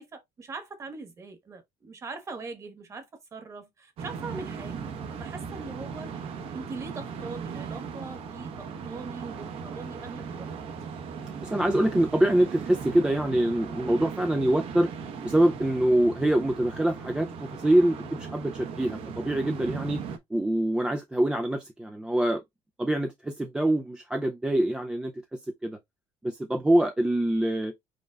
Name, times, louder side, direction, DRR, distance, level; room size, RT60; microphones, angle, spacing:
voice 1, 0.0-10.5, right 3 dB, 25° right, 1.4 m, -41 dB
sound 1, 4.0-20.2, right 6 dB, 50° right, 1.0 m, -38 dB
voice 2, 11.2-14.9 15.2-20.0 20.3-22.4 22.8-25.1 25.6-25.8 26.2-27.7, right 1 dB, 5° right, 0.4 m, -25 dB
5.0 x 4.5 x 2.3 m
cardioid pair, 170°, 12 cm